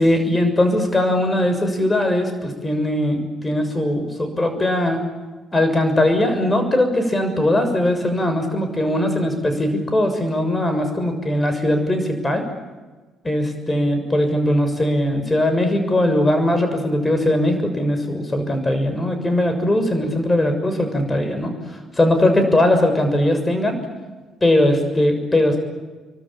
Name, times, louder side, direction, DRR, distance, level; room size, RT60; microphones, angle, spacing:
voice 1, 0.0-5.0 5.5-12.5 13.2-23.8 24.4-25.6, left 1 dB, 20° left, 7 dB, 6.8 m, -20 dB
27.0 x 24.0 x 8.7 m, 1.3 s
figure-of-eight pair, 45°, 0 cm